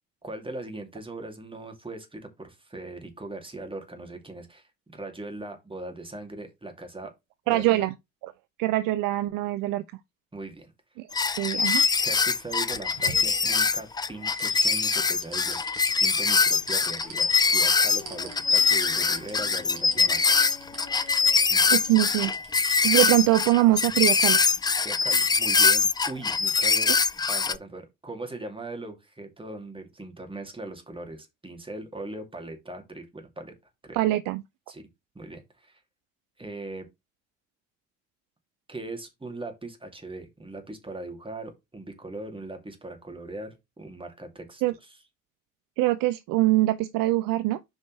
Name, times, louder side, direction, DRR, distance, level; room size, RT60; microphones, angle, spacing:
voice 1, 0.2-7.1 7.5-7.9 10.3-10.7 12.0-15.7 16.0-20.4 21.5-21.6 24.8-27.0 27.3-33.5 33.8-34.0 34.7-34.8 35.1-35.8 36.4-36.9 38.7-45.0, right 2 dB, 10° right, 2.7 m, -40 dB
voice 2, 7.5-7.9 8.6-9.8 11.0-11.1 11.4-11.8 21.7-22.3 22.8-24.4 33.9-34.4 44.6-44.7 45.8-47.6, right 17 dB, 55° right, 0.6 m, -23 dB
sound 1, 11.1-27.6, left 5 dB, 10° left, 0.3 m, -23 dB
sound 2, 12.5-13.8 14.3-23.5 23.9-24.0, right 6 dB, 80° right, 1.8 m, -42 dB
sound 3, 15.8-22.3, left 2 dB, 55° left, 3.9 m, -49 dB
8.2 x 5.2 x 3.2 m
figure-of-eight pair, 50°, 41 cm